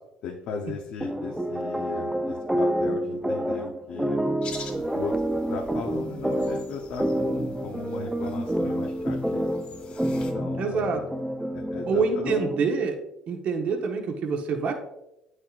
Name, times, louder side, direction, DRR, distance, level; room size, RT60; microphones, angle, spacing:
voice 1, 0.2-4.2 4.7-5.2 5.5-9.5 10.2-11.0 11.5-12.4, left 5 dB, 75° left, 1 dB, 0.9 m, -37 dB
sound 1, 1.0-12.8, right 1 dB, 5° right, 0.5 m, -28 dB
sound 2, 4.4-10.3, left 4 dB, 55° left, 1.9 m, -46 dB
voice 2, 10.6-11.0 11.9-13.0 13.3-14.7, right 5 dB, 60° right, 3 dB, 1.3 m, -26 dB
8.9 x 6.4 x 2.5 m, 0.86 s
supercardioid pair, 85°, 3 cm